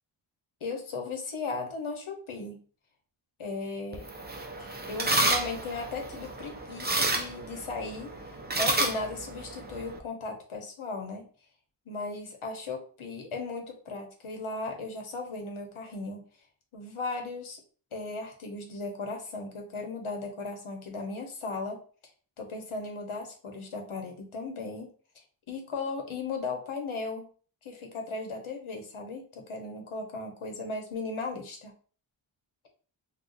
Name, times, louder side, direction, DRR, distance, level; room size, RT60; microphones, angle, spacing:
voice 1, 0.6-2.6 3.4-4.1 4.6-11.3 11.9-16.3 16.7-17.6 17.9-21.8 22.4-27.3 27.6-31.7, left 3 dB, 75° left, 3 dB, 0.9 m, -37 dB
sound 1, 3.9-10.0, right 2 dB, 20° right, 0.5 m, -31 dB
2.4 x 2.3 x 3.8 m, 0.41 s
wide cardioid pair, 75°, 49 cm